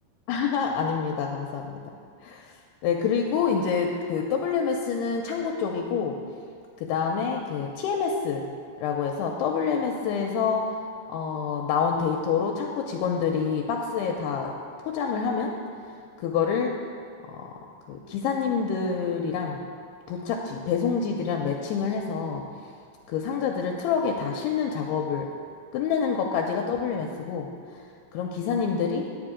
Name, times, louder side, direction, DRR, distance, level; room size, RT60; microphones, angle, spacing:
voice 1, 0.3-1.8 2.2-2.5 2.8-6.2 6.8-8.5 8.8-10.7 11.1-14.5 14.8-15.6 16.2-16.8 17.3-17.5 17.9-19.6 20.1-22.4 23.1-25.3 25.7-27.5 28.1-29.1, left 6 dB, 80° left, 2 dB, 2.5 m, -27 dB
9.8 x 9.7 x 5.0 m, 2.2 s
omnidirectional pair, 5.0 m